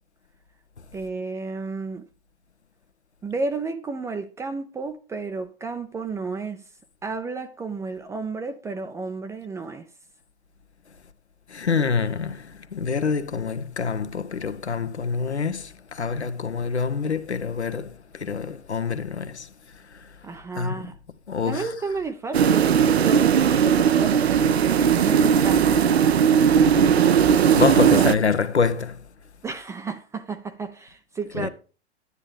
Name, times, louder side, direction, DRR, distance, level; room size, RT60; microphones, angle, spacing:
voice 1, 0.9-2.0 3.2-6.6 7.0-9.9 20.2-21.0 21.4-26.4 29.4-31.5, right 4 dB, 10° right, 0.6 m, -32 dB
voice 2, 11.5-19.5 20.5-20.7 21.3-21.6 27.6-29.0 31.4-31.5, left 5 dB, 75° left, 1.3 m, -26 dB
sound 1, 22.3-28.2, right 7 dB, 65° right, 0.7 m, -18 dB
11.0 x 9.9 x 3.3 m
figure-of-eight pair, 105°, 33 cm